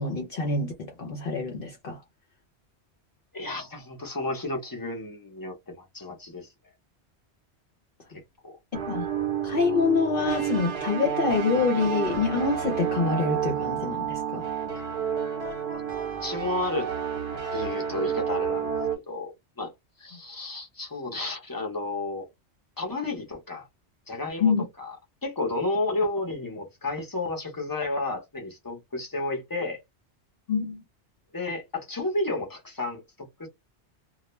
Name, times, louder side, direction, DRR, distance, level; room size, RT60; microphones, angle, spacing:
voice 1, 0.0-2.0 8.7-9.1 9.4-14.4 24.4-24.6 30.5-30.8, left 4 dB, 60° left, 0.8 m, -26 dB
voice 2, 3.3-6.5 8.4-8.6 14.7-14.8 15.7-15.8 16.2-16.9 17.5-18.7 19.1-19.7 20.0-22.3 22.8-23.7 24.1-24.5 24.8-25.0 25.2-29.8 31.3-33.5, left 2 dB, 20° left, 0.6 m, -32 dB
sound 1, 8.7-19.0, right 8 dB, 65° right, 1.0 m, -30 dB
2.3 x 2.1 x 3.0 m
omnidirectional pair, 1.2 m